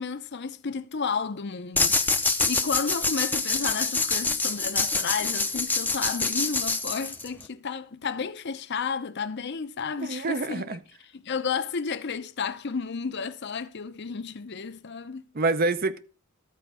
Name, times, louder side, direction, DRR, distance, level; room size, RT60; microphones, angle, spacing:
voice 1, 0.0-10.8 11.1-15.2, left 5 dB, 55° left, 0.6 m, -32 dB
sound 1, 1.8-7.5, left 3 dB, 10° left, 0.6 m, -26 dB
voice 2, 10.0-10.8 15.3-16.0, right 3 dB, 45° right, 0.7 m, -26 dB
13.0 x 4.5 x 6.1 m
head